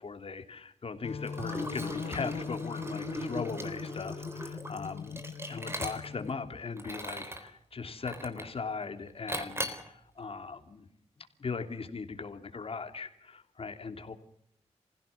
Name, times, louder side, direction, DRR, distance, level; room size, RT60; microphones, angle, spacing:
voice 1, 0.0-5.2 5.5-10.9 11.2-14.1, left 4 dB, 55° left, 6 dB, 2.8 m, -39 dB
sound 1, 1.0-6.5, left 6 dB, 75° left, 1.2 m, -41 dB
Liquid, 1.3-6.3 6.8-7.5 8.1-8.6 9.3-9.9, equal, 20° right, 3.9 m, -38 dB
26.0 x 16.0 x 7.2 m, 0.74 s
cardioid pair, 70°, 11 cm